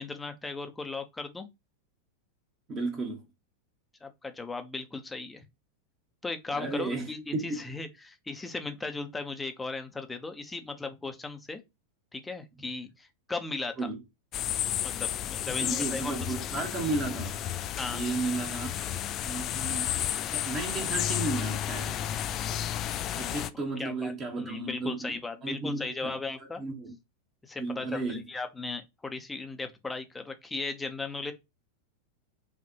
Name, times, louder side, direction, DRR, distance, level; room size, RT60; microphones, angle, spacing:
voice 1, 0.0-1.5 4.0-5.4 6.2-11.6 12.1-13.9 14.8-16.1 17.8-18.0 23.8-26.6 27.4-31.3, left 3 dB, 10° left, 0.8 m, -37 dB
voice 2, 2.7-3.2 6.5-7.6 13.8-14.0 15.5-17.4 17.9-18.7 19.2-19.9 20.2-21.9 23.1-26.1 26.4-26.9 27.6-28.2, right 3 dB, 30° right, 1.2 m, -33 dB
sound 1, 14.3-23.5, left 11 dB, 35° left, 0.4 m, -32 dB
5.4 x 2.5 x 2.8 m
figure-of-eight pair, 90°, 0 cm